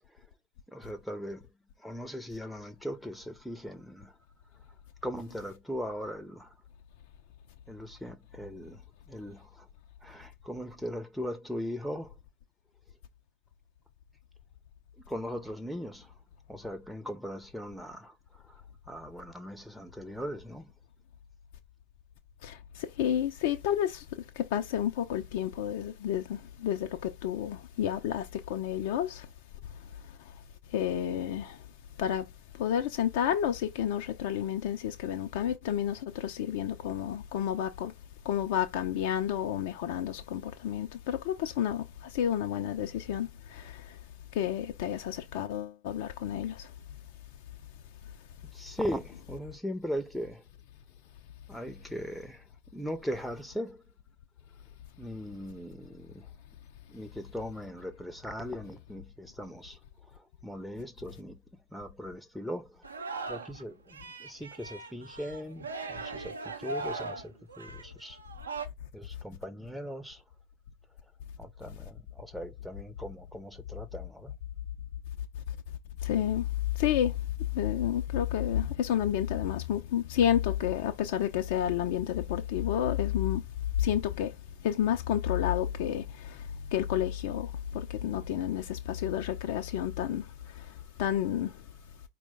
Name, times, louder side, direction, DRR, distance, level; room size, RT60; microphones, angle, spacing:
voice 1, 0.7-1.5 1.8-4.1 5.0-6.5 7.7-8.8 9.1-9.7 10.0-12.1 15.0-16.2 16.5-18.6 18.9-20.7 48.5-50.4 51.5-53.8 55.0-56.3 56.9-59.8 60.1-62.8 63.3-68.2 68.9-70.2 71.4-74.3, equal, ahead, 0.6 m, -39 dB
voice 2, 23.0-24.0 24.4-29.3 30.7-31.6 32.0-32.2 32.6-37.9 38.3-41.8 42.1-43.8 44.4-46.6 76.0-76.4 76.8-77.1 77.5-83.4 83.8-84.3 84.6-86.0 86.7-87.5 87.7-90.2 91.0-91.5, left 10 dB, 50° left, 0.4 m, -30 dB
Singing, 62.8-63.6 63.9-68.7, right 3 dB, 70° right, 0.7 m, -39 dB
4.4 x 2.2 x 4.2 m
figure-of-eight pair, 90°, 0 cm